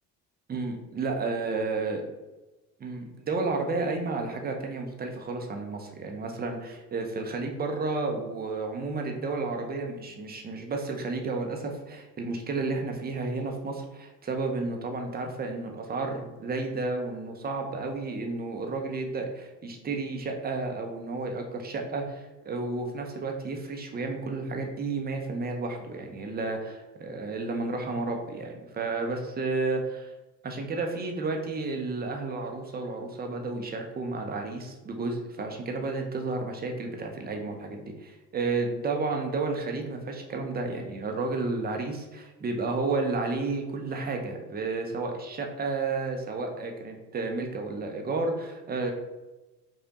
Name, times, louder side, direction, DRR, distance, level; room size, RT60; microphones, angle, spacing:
voice 1, 0.5-2.0 2.8-30.1 30.4-48.9, right 3 dB, 20° right, 3 dB, 0.6 m, -32 dB
5.0 x 2.1 x 2.8 m, 1.1 s
figure-of-eight pair, 55°, 48 cm